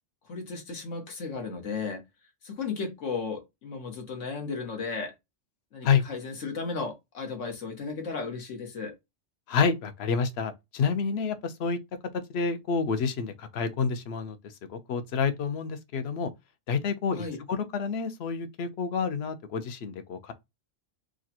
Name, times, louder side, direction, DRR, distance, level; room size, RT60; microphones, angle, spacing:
voice 1, 0.3-2.0 2.4-5.1 5.7-8.9 17.1-17.4, left 4 dB, 85° left, 1.5 m, -35 dB
voice 2, 9.5-11.8 12.3-16.3 16.7-20.3, left 5 dB, 65° left, 0.8 m, -29 dB
4.7 x 2.2 x 2.8 m
omnidirectional pair, 1.3 m